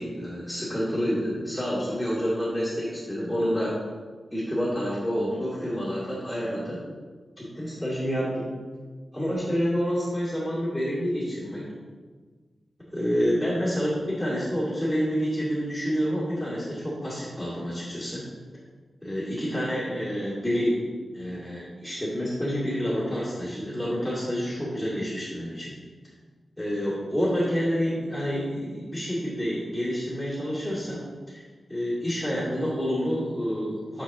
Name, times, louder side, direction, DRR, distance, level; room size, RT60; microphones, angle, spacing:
voice 1, 0.0-3.7 4.3-6.8 7.4-8.5 9.1-11.6 12.9-18.2 19.0-20.8 21.1-25.7 26.6-31.0 31.3-31.4 31.7-34.0, equal, ahead, -10 dB, 2.4 m, -28 dB
10.0 x 5.9 x 3.1 m, 1.5 s
wide cardioid pair, 135°, 0 cm